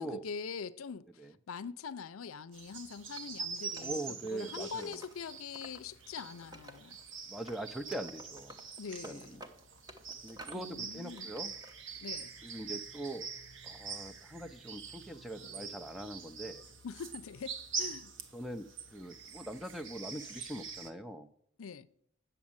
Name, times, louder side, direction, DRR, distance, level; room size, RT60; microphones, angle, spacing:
voice 1, 0.0-7.0 8.8-9.4 10.5-11.3 12.0-12.3 16.8-18.1 21.6-21.9, left 5 dB, 80° left, 0.5 m, -43 dB
sound 1, 2.5-20.9, right 5 dB, 65° right, 1.1 m, -44 dB
Wood, 3.1-5.8 6.1-7.1 7.5-10.7 11.1-11.7, right 1 dB, 20° right, 0.8 m, -53 dB
voice 2, 3.8-5.0 7.3-8.6 9.0-9.4 10.2-11.5 12.4-13.3 13.6-16.6 18.3-21.3, right 1 dB, ahead, 0.5 m, -42 dB
8.4 x 7.1 x 8.7 m
head